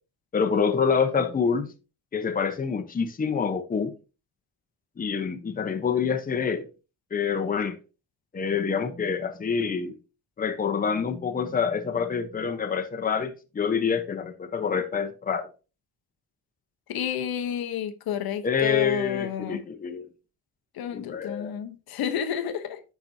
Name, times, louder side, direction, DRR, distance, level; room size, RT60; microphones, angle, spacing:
voice 1, 0.3-1.7 2.1-3.9 5.0-6.7 7.1-7.8 8.3-10.0 10.4-15.5 18.4-20.1 20.9-21.6, left 6 dB, 25° left, 0.8 m, -27 dB
voice 2, 16.9-19.6 20.7-22.8, left 9 dB, 80° left, 0.9 m, -30 dB
9.9 x 6.0 x 2.6 m
cardioid pair, 140°, 36 cm